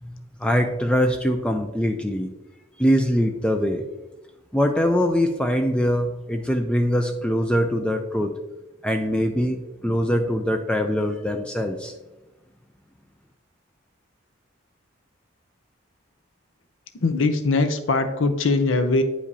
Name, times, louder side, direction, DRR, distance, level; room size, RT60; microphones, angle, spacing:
voice 1, 0.0-2.3 2.8-3.9 4.5-8.4 8.8-11.9, equal, 5° left, 5 dB, 0.3 m, -23 dB
voice 2, 17.0-19.0, left 3 dB, 70° left, 9 dB, 0.6 m, -21 dB
9.7 x 5.0 x 2.7 m, 1.1 s
head